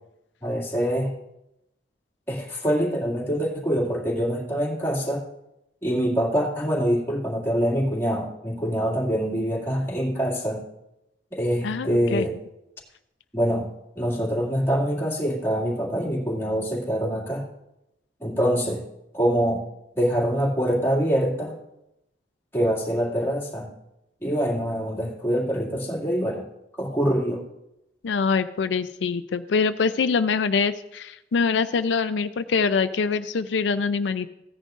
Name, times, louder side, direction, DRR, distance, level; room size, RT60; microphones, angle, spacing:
voice 1, 0.4-1.1 2.3-5.2 5.8-10.6 11.3-12.3 13.3-13.7 14.0-17.5 18.2-18.8 19.1-19.6 20.0-21.5 22.5-23.7 24.2-26.4 26.7-27.4, equal, 15° left, -4 dB, 2.2 m, -25 dB
voice 2, 11.6-12.3 28.0-34.3, left 5 dB, 85° left, 11 dB, 0.4 m, -24 dB
15.5 x 10.0 x 2.5 m, 0.87 s
head